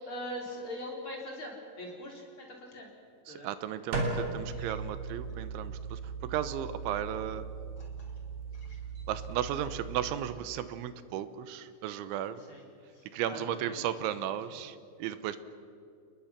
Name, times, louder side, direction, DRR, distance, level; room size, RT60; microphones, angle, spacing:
voice 1, 0.0-2.9 3.3-3.5 4.5-4.7 7.8-7.9 8.5-8.8 12.5-12.6 12.9-13.9, left 1 dB, 30° left, -1 dB, 4.2 m, -42 dB
voice 2, 3.3-7.4 9.1-12.4 13.1-15.4, right 10 dB, 80° right, 12 dB, 3.1 m, -35 dB
sound 1, 3.9-10.1, right 4 dB, 50° right, 4.4 m, -37 dB
29.5 x 20.5 x 5.9 m, 2.4 s
omnidirectional pair, 5.7 m